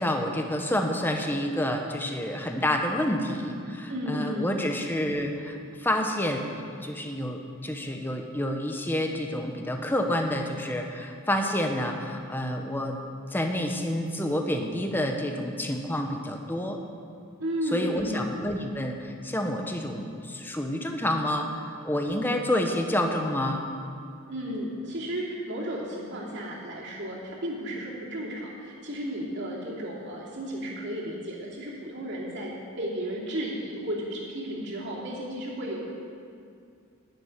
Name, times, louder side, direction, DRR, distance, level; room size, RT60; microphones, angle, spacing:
voice 1, 0.0-6.5 6.8-13.0 13.3-16.8 17.7-23.6, left 1 dB, 10° left, 3 dB, 0.9 m, -29 dB
voice 2, 3.9-4.7 17.4-18.3 24.3-35.9, equal, 50° right, -4 dB, 2.8 m, -33 dB
10.5 x 7.5 x 9.7 m, 2.3 s
head